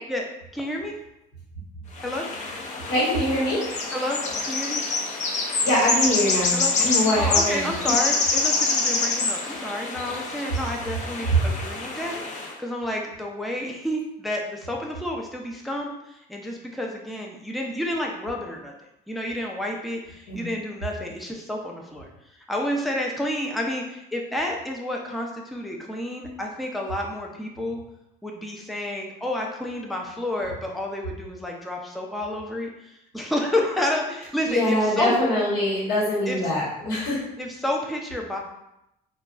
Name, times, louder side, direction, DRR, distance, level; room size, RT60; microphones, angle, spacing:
voice 1, 0.5-1.0 2.0-2.3 3.9-4.8 6.5-6.7 7.2-18.7 19.1-22.1 22.5-27.8 28.2-35.1 36.3-36.4 37.4-38.4, left 1 dB, ahead, 0 dB, 0.4 m, -30 dB
sound 1, 2.0-12.5, left 3 dB, 45° left, 0.5 m, -26 dB
voice 2, 2.9-3.6 5.6-7.7 20.3-20.4 34.5-37.2, left 1 dB, 80° left, -6 dB, 1.1 m, -23 dB
3.8 x 2.2 x 2.3 m, 0.84 s
cardioid pair, 110°, 17 cm